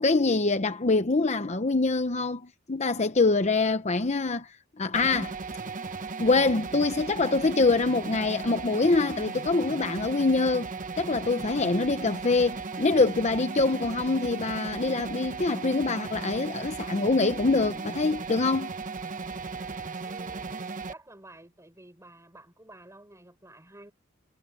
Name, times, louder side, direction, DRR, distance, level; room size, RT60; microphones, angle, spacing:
voice 1, 0.0-5.3 6.2-10.7 11.0-18.7, left 3 dB, 35° left, 0.8 m, -25 dB
sound 1, 4.9-20.9, right 4 dB, 40° right, 1.0 m, -36 dB
voice 2, 20.0-23.9, right 1 dB, 15° right, 5.9 m, -51 dB
head